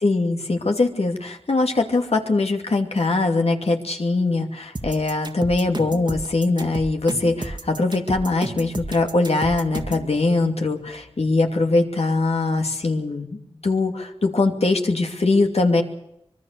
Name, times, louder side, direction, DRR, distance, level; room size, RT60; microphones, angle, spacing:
voice 1, 0.0-15.8, left 3 dB, 80° left, 4 dB, 2.7 m, -22 dB
sound 1, 4.7-10.1, right 2 dB, 45° right, 1.8 m, -31 dB
25.0 x 21.0 x 6.8 m, 0.81 s
wide cardioid pair, 50°, 10 cm